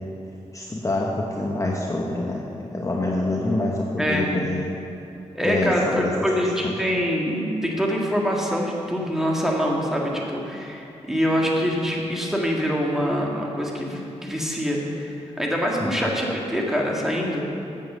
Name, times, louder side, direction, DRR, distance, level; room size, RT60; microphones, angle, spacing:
voice 1, 0.5-2.5 2.7-4.6 5.4-6.1 6.6-6.7 15.8-16.0, left 2 dB, 25° left, -1 dB, 0.9 m, -26 dB
voice 2, 4.0-4.4 5.4-17.4, equal, 5° right, -2 dB, 1.9 m, -25 dB
7.8 x 7.4 x 6.7 m, 2.8 s
cardioid pair, 60°, 12 cm